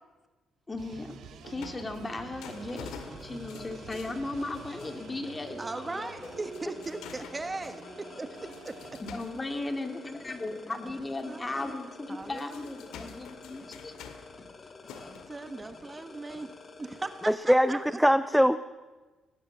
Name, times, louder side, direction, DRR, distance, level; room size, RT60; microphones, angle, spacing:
voice 1, 0.7-1.2 1.5-2.9 3.2-6.3 9.0-13.9, left 2 dB, 20° left, 6 dB, 2.7 m, -36 dB
sound 1, 0.8-9.0, right 6 dB, 75° right, 2.2 m, -47 dB
sound 2, 0.9-5.2 5.5-5.9 6.2-10.4 11.0-11.1 12.0-16.9 17.5-17.6, left 7 dB, 85° left, 1.9 m, -50 dB
sound 3, 2.5-17.3, left 3 dB, 35° left, 2.3 m, -49 dB
voice 2, 5.6-8.3 8.6-8.7 10.8-11.0 11.3-11.8 12.1-12.6 14.9-16.5 16.8-18.0, right 3 dB, 20° right, 9 dB, 1.3 m, -38 dB
voice 3, 17.3-18.6, equal, ahead, 13 dB, 0.6 m, -22 dB
20.5 x 18.0 x 7.5 m, 1.3 s
cardioid pair, 90°, 0 cm